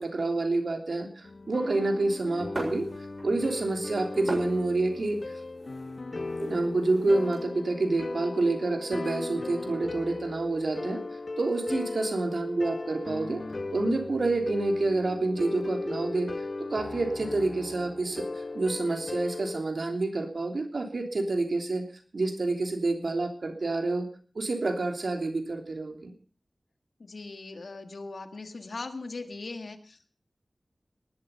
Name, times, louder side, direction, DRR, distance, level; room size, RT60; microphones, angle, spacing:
voice 1, 0.0-2.9 3.2-5.2 6.5-11.0 11.4-13.4 13.7-16.3 16.6-21.8 22.1-24.1 24.3-26.1, right 2 dB, 85° right, 4 dB, 3.1 m, -28 dB
sound 1, 1.2-19.6, left 3 dB, 65° left, 1.1 m, -37 dB
sound 2, 2.5-3.4 3.7-7.4, right 1 dB, 50° right, 7.2 m, -40 dB
voice 2, 11.7-12.0 27.0-30.1, left 3 dB, 85° left, 7 dB, 1.8 m, -40 dB
19.0 x 12.0 x 5.6 m, 0.43 s
wide cardioid pair, 50°, 0 cm